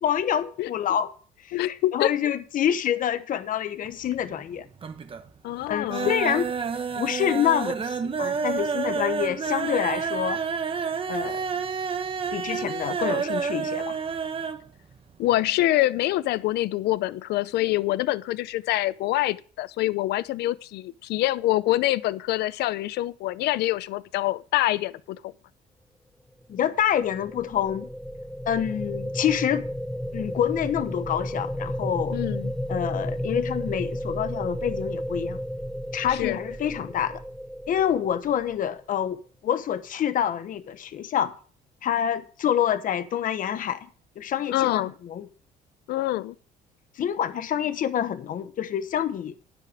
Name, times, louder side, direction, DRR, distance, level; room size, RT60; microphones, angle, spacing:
voice 1, 0.0-1.1 1.4-4.7 5.7-6.5 7.0-10.4 11.1-11.4 12.3-14.0 26.5-27.9 28.5-29.7 30.1-32.2 32.7-35.4 35.9-37.2 37.7-41.3 41.8-43.9 44.2-45.3 47.0-49.3, left 9 dB, 55° left, 1.2 m, -27 dB
voice 2, 1.5-2.1 5.4-6.1 15.2-25.3 32.1-32.5 36.1-36.4 44.5-44.9 45.9-46.3, left 16 dB, 75° left, 0.6 m, -25 dB
sound 1, 3.9-4.5 4.8-5.3 5.6-14.6 14.9-15.0 15.3-15.4, right 5 dB, 30° right, 1.1 m, -29 dB
sound 2, 26.7-38.8, equal, 5° left, 0.7 m, -33 dB
12.5 x 10.0 x 3.5 m
cardioid pair, 110°, 17 cm